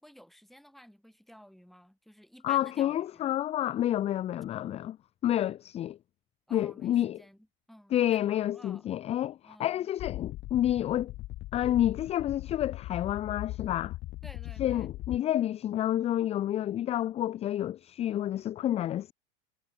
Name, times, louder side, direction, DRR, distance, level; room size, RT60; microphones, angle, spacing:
voice 1, 0.0-3.3 6.5-8.9 9.4-9.9 14.2-14.9, equal, ahead, 2.5 m, -53 dB
voice 2, 2.4-5.0 5.2-6.0 6.5-7.2 7.9-11.1 11.5-13.9 14.6-19.1, left 12 dB, 20° left, 0.4 m, -29 dB
sound 1, 10.0-15.2, left 17 dB, 40° left, 2.3 m, -39 dB
supercardioid pair, 140°, 29 cm